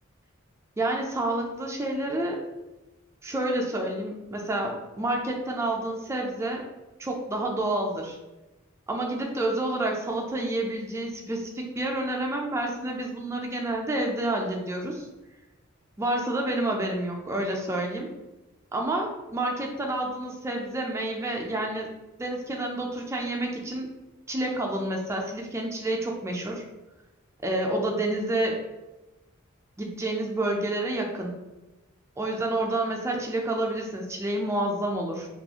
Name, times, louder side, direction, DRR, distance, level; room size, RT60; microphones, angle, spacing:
voice 1, 0.8-2.4 3.2-6.6 7.0-8.2 8.9-15.1 16.0-18.1 18.7-21.9 22.2-23.9 24.3-26.6 27.4-28.6 29.8-31.3 32.2-35.3, right 1 dB, 15° right, 0 dB, 0.3 m, -29 dB
2.4 x 2.3 x 2.7 m, 1.0 s
head